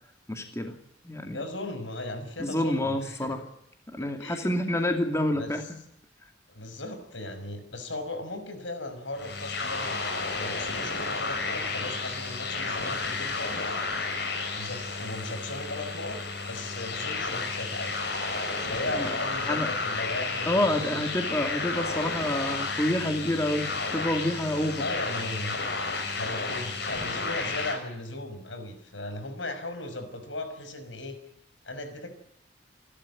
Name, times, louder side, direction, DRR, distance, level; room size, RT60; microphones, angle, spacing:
voice 1, 0.3-0.7 1.0-1.4 2.4-3.4 3.9-5.6 19.0-19.1 19.5-19.7 20.5-24.8, left 1 dB, 15° left, 4 dB, 2.6 m, -28 dB
voice 2, 1.3-3.4 4.0-4.8 5.3-5.5 6.5-13.8 14.5-16.2 16.5-18.1 18.6-21.3 21.8-22.1 24.8-25.5 26.2-31.2 31.6-32.1, left 2 dB, 85° left, 8 dB, 5.7 m, -37 dB
sound 1, 9.2-27.8, left 4 dB, 60° left, 6.0 m, -32 dB
28.5 x 12.5 x 9.8 m, 0.78 s
head